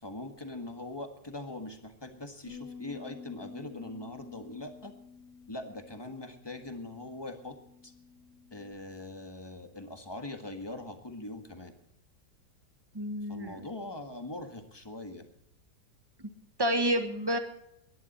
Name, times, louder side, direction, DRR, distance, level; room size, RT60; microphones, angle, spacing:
voice 1, 0.0-4.9 5.5-7.6 7.8-7.9 8.5-11.7 13.3-15.3, left 2 dB, 15° left, 6 dB, 1.4 m, -42 dB
Bass guitar, 2.5-8.7, left 5 dB, 85° right, 7.8 m, -50 dB
voice 2, 12.9-13.6 16.6-17.4, equal, 15° right, 7 dB, 1.4 m, -29 dB
21.5 x 11.0 x 4.2 m, 0.77 s
omnidirectional pair, 1.8 m